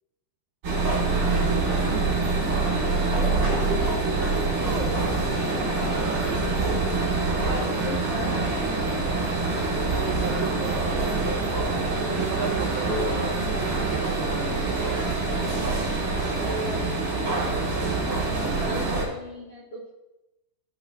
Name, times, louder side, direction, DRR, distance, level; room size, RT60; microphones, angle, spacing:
sound 1, 0.6-19.0, right 3 dB, 30° right, 3.3 m, -25 dB
voice 1, 1.3-1.9 4.1-4.2 9.5-11.1 12.1-14.8, right 7 dB, 85° right, 1 dB, 2.5 m, -35 dB
voice 2, 3.1-6.7 7.4-8.4 12.9-13.2 16.3-17.1 18.6-19.9, left 1 dB, 75° left, -5 dB, 1.3 m, -35 dB
13.0 x 5.9 x 4.0 m, 0.95 s
omnidirectional pair, 5.8 m